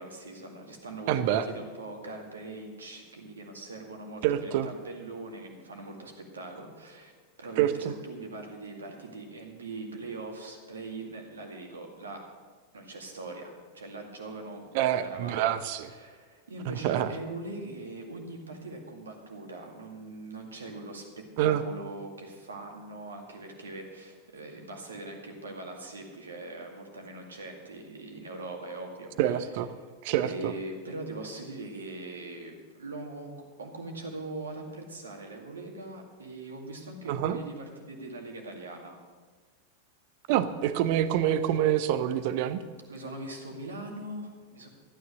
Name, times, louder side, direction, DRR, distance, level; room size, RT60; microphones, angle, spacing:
voice 1, 0.0-12.3 12.7-15.4 15.8-29.4 30.2-33.3 33.6-39.0 42.9-44.7, right 2 dB, 70° right, 2 dB, 2.2 m, -41 dB
voice 2, 1.1-1.4 4.2-4.7 7.6-7.9 14.7-15.9 16.7-17.1 21.4-21.6 29.2-29.7 30.0-30.5 37.1-37.4 40.3-42.6, right 11 dB, 50° right, 13 dB, 0.8 m, -26 dB
14.0 x 9.6 x 6.4 m, 1.4 s
figure-of-eight pair, 90°, 0 cm